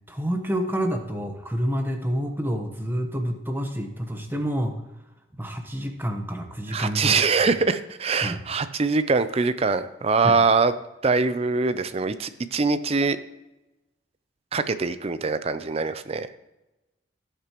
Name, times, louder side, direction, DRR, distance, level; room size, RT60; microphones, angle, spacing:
voice 1, 0.1-4.8 5.4-7.2 8.1-8.4 10.2-10.4, equal, 10° right, 4 dB, 1.1 m, -28 dB
voice 2, 6.7-10.7 11.0-13.2 14.5-16.3, right 4 dB, 35° right, 12 dB, 0.5 m, -23 dB
17.0 x 6.8 x 3.0 m, 1.0 s
head